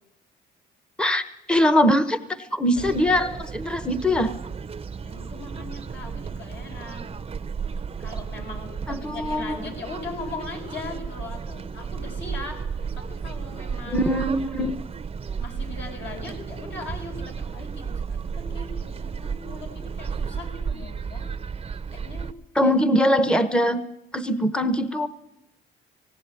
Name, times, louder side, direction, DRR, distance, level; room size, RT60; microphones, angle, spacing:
voice 1, 1.0-4.3 8.9-9.6 13.9-14.8 22.5-23.8 24.1-25.1, equal, 5° left, 12 dB, 0.9 m, -22 dB
sound 1, 2.7-22.3, right 6 dB, 30° right, 0.7 m, -33 dB
voice 2, 5.0-7.1 8.0-12.6 12.9-14.1 15.4-21.3 21.9-22.7, left 3 dB, 65° left, 1 dB, 7.1 m, -39 dB
18.5 x 17.0 x 9.6 m, 0.93 s
cardioid pair, 90°, 20 cm